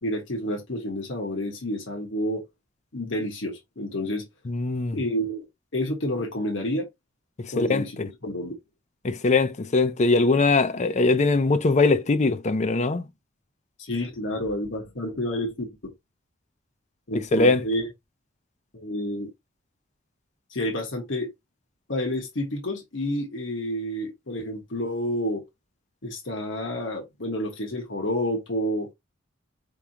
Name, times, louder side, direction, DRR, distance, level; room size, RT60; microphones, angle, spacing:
voice 1, 0.0-2.4 2.9-4.2 4.9-5.4 5.7-6.9 7.5-8.5 13.8-15.9 17.1-17.9 18.7-19.3 20.5-21.3 21.9-25.4 26.0-28.9, left 1 dB, 70° left, 1.5 m, -29 dB
voice 2, 4.5-5.0 7.4-7.8 9.0-13.0 17.3-17.6, left 3 dB, 40° left, 0.5 m, -21 dB
4.8 x 3.6 x 2.8 m
head